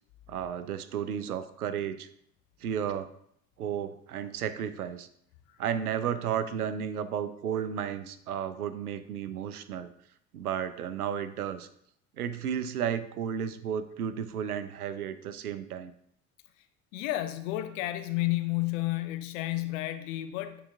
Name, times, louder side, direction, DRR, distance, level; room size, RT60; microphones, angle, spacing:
voice 1, 0.3-2.1 2.6-3.1 3.6-5.1 5.6-9.9 10.3-11.7 12.2-15.9, right 8 dB, 80° right, 12 dB, 0.6 m, -33 dB
voice 2, 16.9-20.7, left 16 dB, 60° left, 9 dB, 0.8 m, -31 dB
8.6 x 4.1 x 3.5 m, 0.69 s
figure-of-eight pair, 60°, 44 cm